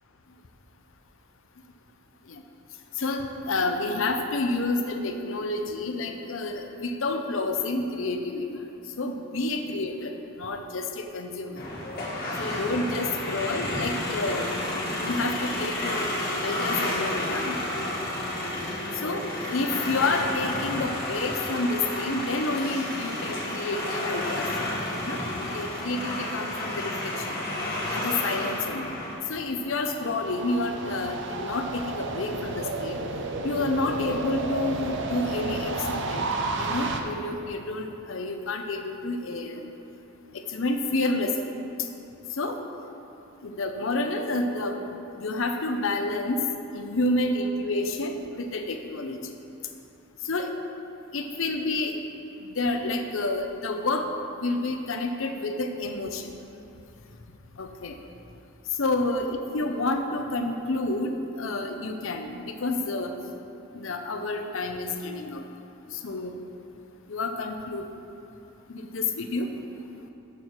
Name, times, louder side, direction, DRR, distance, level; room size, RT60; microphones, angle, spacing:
voice 1, 3.0-8.6 9.0-11.6 12.4-14.5 14.9-16.1 16.4-17.6 18.9-24.5 25.0-27.4 27.9-28.9 29.3-33.0 33.4-36.3 36.6-39.6 40.3-41.5 42.3-42.6 43.4-46.4 46.7-49.2 50.2-50.5 51.1-51.9 52.4-54.1 54.4-56.3 57.6-58.0 58.8-63.1 63.7-65.4 65.9-66.4 67.1-67.9 68.7-69.5, left 2 dB, 65° left, 5 dB, 0.7 m, -29 dB
sound 1, 11.6-29.1, left 1 dB, 45° left, 1.7 m, -31 dB
sound 2, 29.3-37.0, right 3 dB, 60° right, 0.7 m, -32 dB
7.0 x 6.5 x 5.9 m, 2.9 s
head